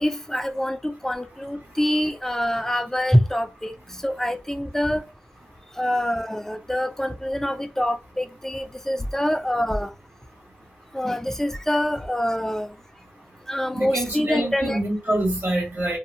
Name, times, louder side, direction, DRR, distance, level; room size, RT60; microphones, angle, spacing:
voice 1, 0.0-3.7 4.0-5.0 5.8-9.9 10.9-12.7 13.5-14.8, equal, 10° left, 0.3 m, -25 dB
voice 2, 13.7-16.0, right 1 dB, 55° right, 1.4 m, -26 dB
2.6 x 2.1 x 2.6 m
wide cardioid pair, 80°, 5 cm